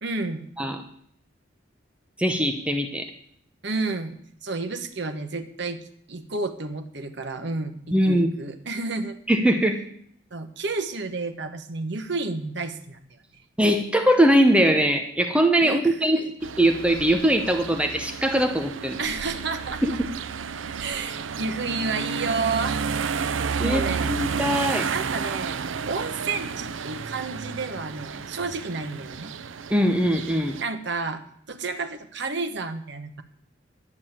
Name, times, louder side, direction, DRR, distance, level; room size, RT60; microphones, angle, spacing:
voice 1, 0.0-0.5 3.6-5.8 6.1-9.2 10.3-13.0 15.6-16.3 19.0-20.0 20.8-22.8 23.6-24.2 24.9-25.6 25.9-29.3 30.6-33.2, right 3 dB, 65° right, 7 dB, 1.1 m, -31 dB
voice 2, 2.2-3.1 7.9-8.3 9.3-9.8 13.6-16.2 16.6-19.0 19.8-19.9 23.6-23.8 24.1-24.9 29.7-30.6, right 1 dB, 5° right, 5 dB, 0.8 m, -21 dB
sound 1, 16.4-30.6, right 6 dB, 85° right, 0.6 m, -31 dB
11.0 x 6.3 x 8.9 m, 0.64 s
head